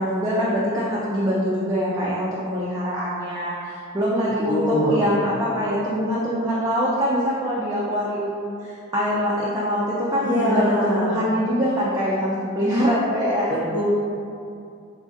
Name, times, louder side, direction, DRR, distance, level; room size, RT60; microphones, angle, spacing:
voice 1, 0.0-13.5, equal, 15° right, -7 dB, 0.3 m, -24 dB
voice 2, 4.5-5.0 10.2-11.2 13.7-13.8, equal, 25° left, -14 dB, 0.7 m, -22 dB
4.0 x 2.4 x 2.5 m, 2.5 s
head